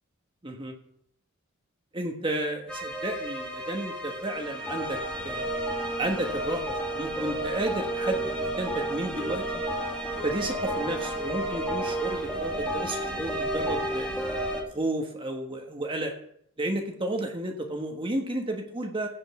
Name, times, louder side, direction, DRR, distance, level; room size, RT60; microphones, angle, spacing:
voice 1, 0.4-0.7 1.9-5.0 5.2-5.5 6.0-9.6 10.2-14.1 14.7-16.1 16.6-19.1, right 1 dB, 25° right, 2 dB, 1.3 m, -32 dB
sound 1, 2.7-14.6, right 1 dB, 5° left, 1.8 m, -31 dB
15.5 x 5.3 x 6.9 m, 0.68 s
head